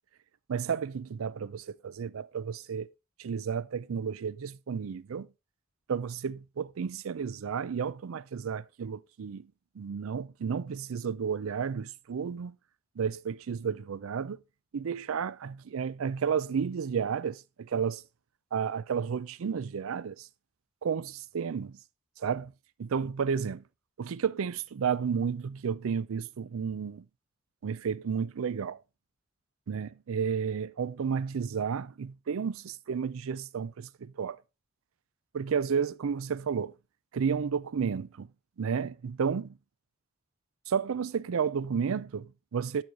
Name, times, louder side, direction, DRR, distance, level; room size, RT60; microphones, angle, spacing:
voice 1, 0.5-2.9 3.2-5.3 5.9-9.4 9.8-12.5 13.0-14.4 14.7-18.0 18.5-20.3 20.8-21.7 22.2-22.5 22.8-23.6 24.0-27.0 27.6-28.8 29.7-34.4 35.3-36.7 37.1-38.3 38.6-39.5 40.7-42.8, right 6 dB, 90° right, 0.4 m, -32 dB
11.5 x 4.8 x 3.8 m
head